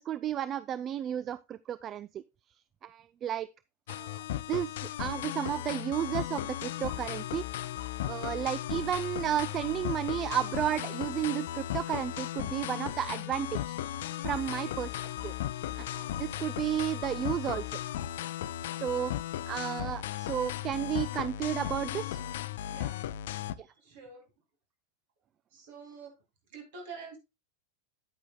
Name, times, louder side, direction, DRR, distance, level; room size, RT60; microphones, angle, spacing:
voice 1, 0.0-2.2 2.8-3.5 3.9-4.2 4.5-7.4 8.0-13.8 14.2-14.9 15.2-15.3 15.8-17.8 18.8-19.1 19.5-22.2 23.6-23.7, right 10 dB, 30° right, 0.3 m, -33 dB
sound 1, 3.9-23.6, left 12 dB, 55° left, 0.4 m, -36 dB
voice 2, 23.8-24.2 25.5-26.1 26.5-27.2, right 5 dB, 50° right, 3.3 m, -47 dB
9.7 x 8.8 x 2.3 m
figure-of-eight pair, 90°, 0 cm